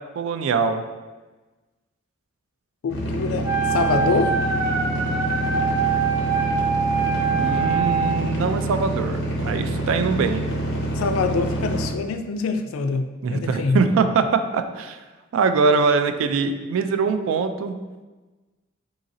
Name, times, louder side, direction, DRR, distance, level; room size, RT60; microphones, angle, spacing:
voice 1, 0.2-0.8 7.3-10.5 13.2-15.0 15.3-17.8, right 5 dB, 70° right, 9 dB, 0.3 m, -23 dB
voice 2, 2.8-4.3 10.9-13.8, left 4 dB, 85° left, 8 dB, 0.4 m, -25 dB
sound 1, 2.9-11.9, right 1 dB, 60° left, 0.8 m, -27 dB
Wind instrument woodwind instrument, 3.4-8.2, right 5 dB, 15° right, 0.5 m, -24 dB
3.9 x 3.9 x 2.6 m, 1.2 s
head